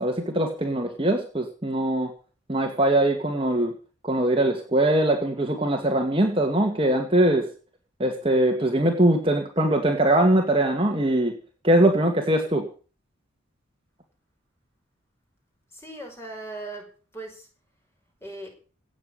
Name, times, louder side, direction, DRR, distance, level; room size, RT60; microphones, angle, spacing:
voice 1, 0.0-2.1 2.5-3.7 4.0-7.5 8.0-11.4 11.6-12.7, right 1 dB, 25° right, 3 dB, 2.1 m, -22 dB
voice 2, 15.7-17.5 18.2-18.5, right 2 dB, 10° left, 2 dB, 5.5 m, -38 dB
17.5 x 7.3 x 8.6 m, 0.38 s
head